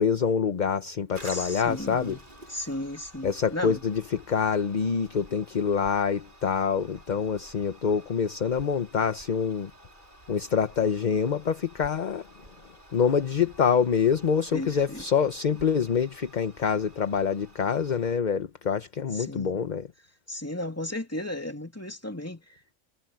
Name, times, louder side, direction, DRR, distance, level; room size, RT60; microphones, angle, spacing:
voice 1, 0.0-2.2 3.2-9.7 10.3-12.3 12.9-19.9, left 6 dB, 40° left, 0.9 m, -26 dB
Toilet flush, 1.1-18.2, right 1 dB, 40° right, 4.2 m, -51 dB
voice 2, 1.2-2.2 2.5-3.8 14.5-15.0 19.1-19.6 20.3-22.7, left 1 dB, 10° left, 2.9 m, -35 dB
omnidirectional pair, 1.2 m